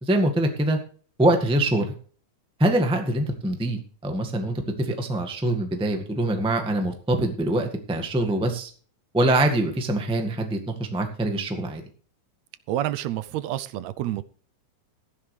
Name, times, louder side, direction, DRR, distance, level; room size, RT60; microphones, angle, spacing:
voice 1, 0.0-0.8 1.2-1.9 2.6-8.7 9.1-11.8, right 1 dB, 5° right, 4 dB, 1.1 m, -24 dB
voice 2, 12.7-14.2, right 13 dB, 75° right, 15 dB, 1.8 m, -28 dB
14.5 x 11.0 x 3.3 m, 0.43 s
omnidirectional pair, 3.4 m